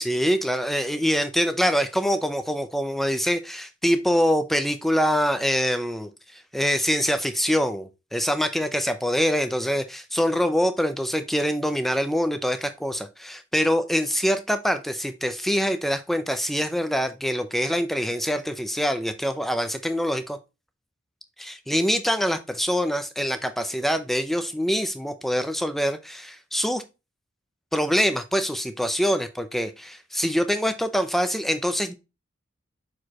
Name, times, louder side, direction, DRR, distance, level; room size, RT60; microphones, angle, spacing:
voice 1, 0.0-20.4 21.4-26.8 27.7-31.9, equal, ahead, 0.6 m, -24 dB
6.5 x 4.8 x 3.0 m
head